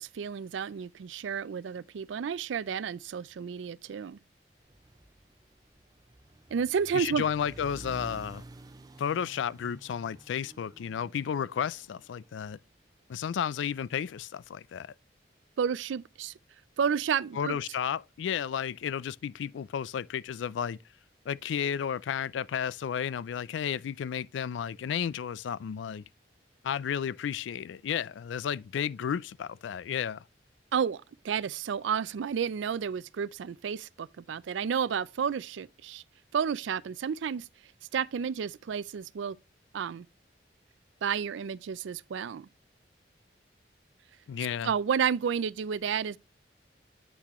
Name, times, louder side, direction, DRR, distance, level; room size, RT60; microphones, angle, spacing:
voice 1, 0.0-4.2 6.5-7.2 15.6-16.3 16.8-17.6 30.7-36.0 36.3-37.5 37.9-39.4 39.7-40.1 41.0-42.5 44.6-46.2, right 7 dB, 85° right, 0.4 m, -31 dB
sound 1, 4.6-13.0, right 1 dB, 20° right, 0.4 m, -51 dB
voice 2, 6.9-8.4 9.0-12.6 13.1-14.9 17.4-20.8 21.3-26.0 26.6-30.2 44.3-44.7, left 8 dB, 85° left, 0.3 m, -32 dB
8.2 x 5.9 x 3.0 m
head